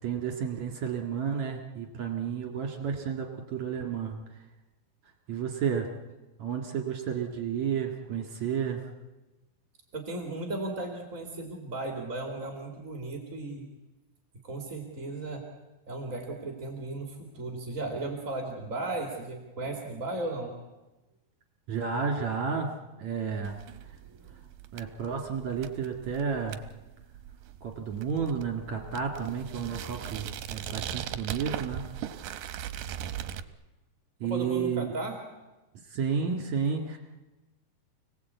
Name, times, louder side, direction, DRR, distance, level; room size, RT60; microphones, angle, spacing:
voice 1, 0.0-4.2 5.3-5.9 6.4-8.8 21.7-22.7 23.0-23.6 24.7-26.6 27.6-31.8 34.2-34.9 35.9-37.0, right 6 dB, 55° right, 2 dB, 3.1 m, -31 dB
voice 2, 9.9-13.7 14.4-15.4 15.9-20.5 24.0-24.4 34.2-35.2, right 2 dB, 25° right, 1 dB, 2.4 m, -36 dB
sound 1, 23.4-33.4, right 10 dB, 70° right, 2.5 m, -39 dB
29.5 x 19.0 x 8.3 m, 1.1 s
omnidirectional pair, 4.4 m